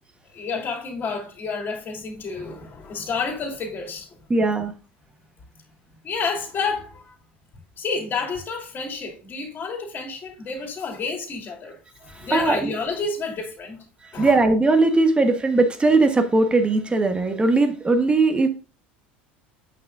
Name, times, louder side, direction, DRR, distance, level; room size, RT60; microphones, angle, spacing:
voice 1, 0.3-4.2 6.0-7.1 7.8-11.8 12.0-13.9 14.1-14.3, left 4 dB, 35° left, 2.8 m, -30 dB
voice 2, 4.3-4.7 12.0-12.7 14.0-18.5, right 3 dB, 20° right, 1.4 m, -19 dB
8.8 x 5.9 x 2.7 m
hypercardioid pair, 75°, 6 cm